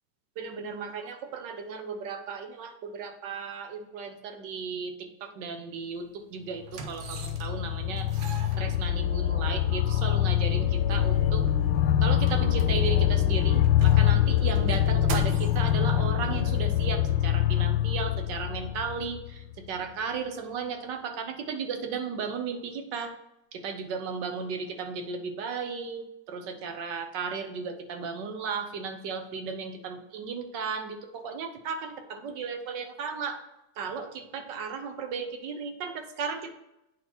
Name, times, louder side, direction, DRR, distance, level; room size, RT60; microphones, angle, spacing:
voice 1, 0.4-8.1 8.6-11.4 12.0-23.1 23.5-33.4 33.8-36.5, right 5 dB, 75° right, 6 dB, 1.4 m, -35 dB
sound 1, 5.8-6.0 6.6-7.7 8.0-9.3 10.1-10.2 10.4-10.5 11.0-13.1 13.5-15.7 16.6-16.7, right 5 dB, 90° right, 1.5 m, -42 dB
sound 2, 6.7-19.6, left 11 dB, 90° left, 1.3 m, -24 dB
8.7 x 3.8 x 4.3 m, 0.88 s
omnidirectional pair, 2.0 m